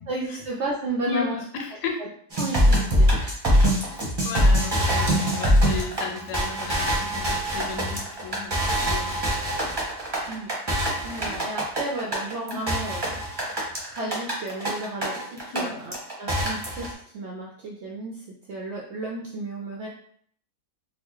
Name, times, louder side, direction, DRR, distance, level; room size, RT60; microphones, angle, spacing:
voice 1, 0.1-1.4 2.0-2.1 2.4-3.2 10.2-10.5 11.0-13.2 13.9-19.9, right 2 dB, 75° right, -2 dB, 0.6 m, -33 dB
voice 2, 1.0-2.0 3.2-3.4 4.2-9.4 11.2-11.4 12.5-12.6 15.5-15.8, left 4 dB, 90° left, 3 dB, 1.2 m, -34 dB
sound 1, 2.3-15.6 15.9-16.9, equal, 25° right, 0.6 m, -23 dB
4.0 x 2.1 x 2.9 m, 0.62 s
omnidirectional pair, 1.7 m